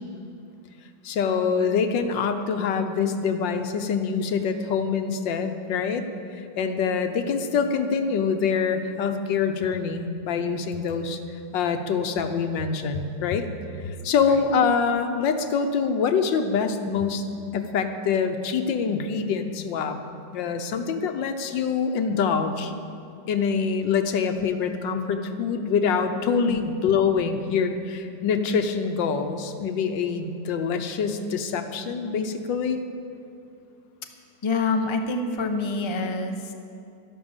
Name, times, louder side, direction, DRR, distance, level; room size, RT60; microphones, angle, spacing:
voice 1, 1.0-6.0 6.3-11.2 11.5-13.5 13.8-17.2 17.5-20.0 20.3-22.7 23.3-32.8, left 6 dB, 90° left, 7 dB, 1.6 m, -25 dB
voice 2, 34.4-36.5, left 3 dB, 25° left, 4 dB, 0.7 m, -26 dB
11.5 x 11.5 x 7.2 m, 2.6 s
omnidirectional pair, 1.9 m